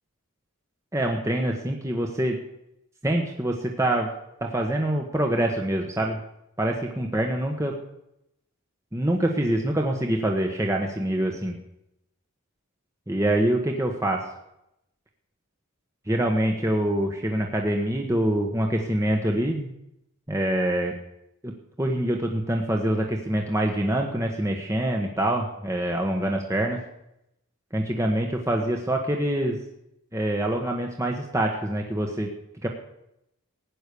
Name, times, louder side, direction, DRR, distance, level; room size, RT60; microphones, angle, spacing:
voice 1, 0.9-2.4 3.0-4.1 4.4-6.2 6.6-7.8 8.9-11.6 13.1-14.2 16.1-19.7 20.3-20.9 21.4-21.5 21.8-26.8 27.7-29.6 30.1-32.3 32.6-32.7, right 1 dB, 15° right, 2 dB, 1.2 m, -25 dB
16.0 x 10.0 x 6.9 m, 0.82 s
head